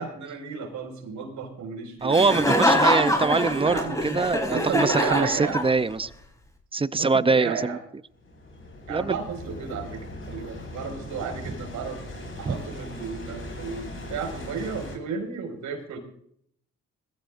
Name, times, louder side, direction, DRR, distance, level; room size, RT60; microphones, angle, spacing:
voice 1, 0.0-2.2 3.2-3.3 3.7-3.9 4.4-5.6 7.0-7.8 8.9-12.0 12.4-16.0, right 5 dB, 75° right, 3 dB, 5.2 m, -33 dB
voice 2, 2.0-6.1 6.7-7.8 8.9-9.2 11.4-11.5 12.5-12.6, right 4 dB, 20° right, 15 dB, 0.6 m, -23 dB
Laughter, 2.1-6.0, equal, 10° left, 4.2 m, -24 dB
sound 1, 8.1-15.0, left 1 dB, 45° left, 6.8 m, -39 dB
21.5 x 15.5 x 2.6 m, 0.65 s
cardioid pair, 90°, 30 cm